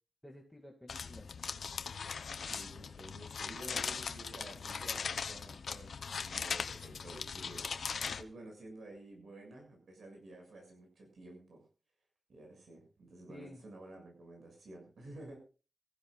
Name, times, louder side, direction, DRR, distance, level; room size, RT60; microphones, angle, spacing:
voice 1, 0.2-1.3 13.3-13.6, left 1 dB, 5° left, 0 dB, 2.4 m, -53 dB
sound 1, 0.9-8.2, left 5 dB, 85° left, 0.8 m, -40 dB
voice 2, 2.5-7.7 8.2-11.6 12.3-15.4, right 1 dB, 85° right, 3 dB, 7.1 m, -51 dB
25.0 x 15.5 x 2.5 m, 0.35 s
wide cardioid pair, 100°, 0 cm